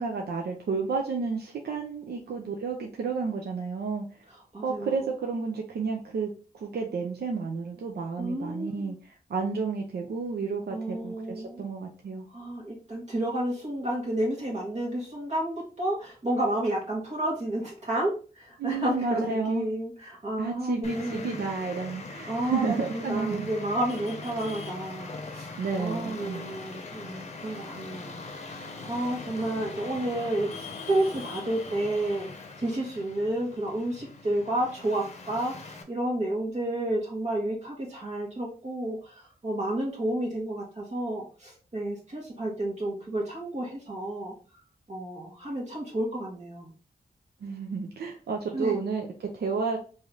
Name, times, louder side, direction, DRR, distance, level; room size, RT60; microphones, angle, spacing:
voice 1, 0.0-4.0 4.6-12.3 18.6-19.7 20.4-23.5 25.6-26.4 47.4-49.8, right 4 dB, 85° right, 2 dB, 0.5 m, -31 dB
voice 2, 4.5-5.0 8.2-9.0 10.7-11.7 12.3-21.5 22.3-32.3 32.6-44.3 44.9-46.7 48.5-48.8, right 1 dB, 45° right, -2 dB, 1.4 m, -31 dB
Traffic noise roadway noise, 20.8-35.8, left 3 dB, 45° left, 0.7 m, -41 dB
3.1 x 2.8 x 3.7 m, 0.37 s
wide cardioid pair, 80°, 16 cm